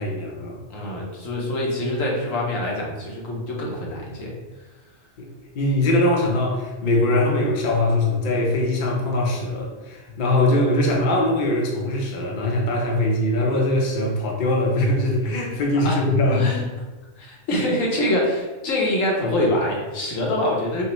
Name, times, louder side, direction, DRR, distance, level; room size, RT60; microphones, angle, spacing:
voice 1, 0.0-0.6 5.2-16.5 18.1-18.2, left 1 dB, 45° left, -1 dB, 0.7 m, -22 dB
voice 2, 0.7-4.3 15.8-16.0 16.3-16.6 17.2-20.9, left 1 dB, 75° left, -2 dB, 1.3 m, -25 dB
5.7 x 2.1 x 3.0 m, 1.2 s
omnidirectional pair, 1.4 m